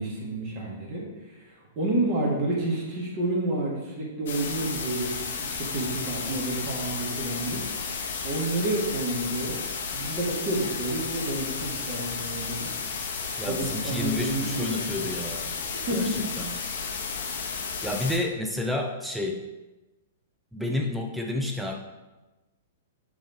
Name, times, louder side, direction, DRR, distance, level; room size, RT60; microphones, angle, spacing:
voice 1, 0.0-8.0 8.2-9.6 9.9-12.7 13.4-15.1 15.9-16.3, right 2 dB, 35° right, -2 dB, 1.8 m, -30 dB
sound 1, 4.3-18.2, left 5 dB, 55° left, 1.0 m, -33 dB
voice 2, 13.4-15.5 15.9-16.1 16.4-16.5 17.8-19.4 20.5-21.8, left 1 dB, 5° right, 1 dB, 0.5 m, -30 dB
7.2 x 3.5 x 4.1 m, 1.1 s
figure-of-eight pair, 105°, 0 cm